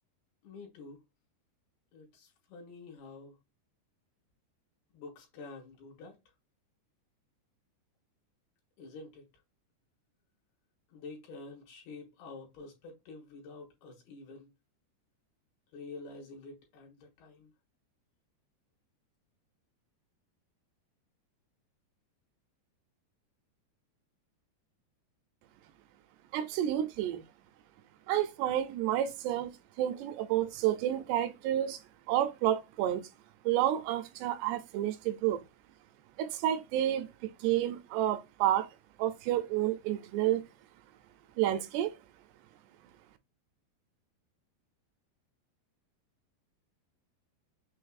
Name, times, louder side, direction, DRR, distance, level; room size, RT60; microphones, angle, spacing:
voice 1, 0.4-1.0 1.9-3.4 4.9-6.2 8.8-9.2 10.9-14.5 15.7-17.5, left 3 dB, 70° left, 3.0 m, -48 dB
voice 2, 26.3-27.2 28.1-29.5 29.8-31.8 32.1-33.1 33.5-35.4 36.2-38.7 39.0-40.4 41.4-41.9, right 12 dB, 80° right, 2.5 m, -30 dB
6.5 x 2.5 x 2.4 m
omnidirectional pair, 5.0 m